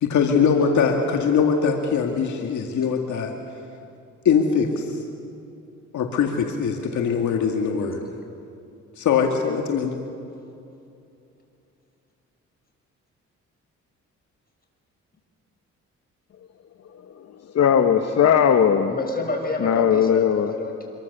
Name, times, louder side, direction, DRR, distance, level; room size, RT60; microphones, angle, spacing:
voice 1, 0.0-3.3 4.3-5.0 5.9-8.0 9.0-9.9, left 6 dB, 70° left, 2 dB, 2.0 m, -22 dB
voice 2, 17.5-18.9 19.6-20.5, left 8 dB, 55° left, 7 dB, 1.3 m, -18 dB
voice 3, 18.8-20.9, left 2 dB, 30° left, 2 dB, 6.0 m, -29 dB
26.0 x 23.5 x 6.7 m, 2.7 s
cardioid pair, 90°, 30 cm